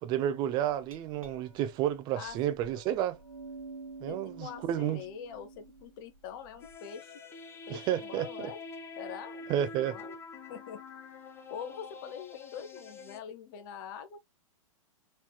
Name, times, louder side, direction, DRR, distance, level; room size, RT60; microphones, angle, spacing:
voice 1, 0.0-3.2 4.0-5.0 7.7-8.5 9.5-10.0, right 11 dB, 25° right, 0.5 m, -31 dB
Glass, 0.9-6.8, right 3 dB, 75° right, 1.1 m, -49 dB
voice 2, 2.2-2.5 4.1-7.1 7.7-8.6 9.0-10.2 10.5-10.8 11.5-14.2, left 8 dB, 40° left, 0.9 m, -44 dB
sound 1, 6.6-13.2, left 3 dB, 15° left, 0.7 m, -46 dB
4.7 x 3.2 x 2.3 m
figure-of-eight pair, 105°, 18 cm